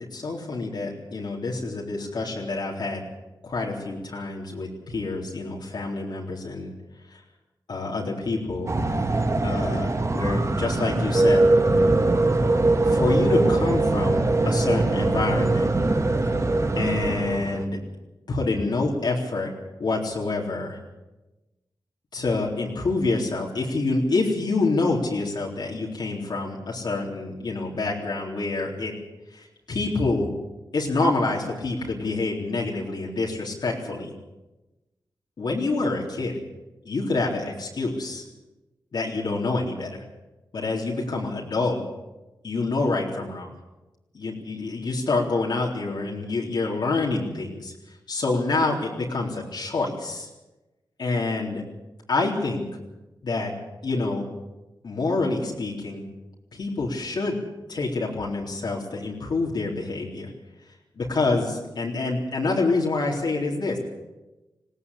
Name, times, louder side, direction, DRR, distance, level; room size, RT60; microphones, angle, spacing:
voice 1, 0.1-3.0 3.4-6.7 7.1-7.2 7.7-8.7 9.4-11.5 12.8-15.7 16.8-17.8 18.3-19.5 19.8-20.8 22.1-28.9 29.3-30.3 30.7-34.1 35.4-36.3 36.9-38.2 38.9-40.0 40.5-41.8 42.4-43.5 44.1-47.7 48.1-50.3 51.0-51.6 52.1-52.6 53.2-53.5 53.8-54.3 54.8-56.0 56.5-57.4 57.7-60.3 61.0-63.8, left 3 dB, 70° left, -3 dB, 3.9 m, -27 dB
sound 1, 8.7-17.6, right 2 dB, 40° right, 1.9 m, -22 dB
20.5 x 17.0 x 8.4 m, 1.1 s
cardioid pair, 65°, 8 cm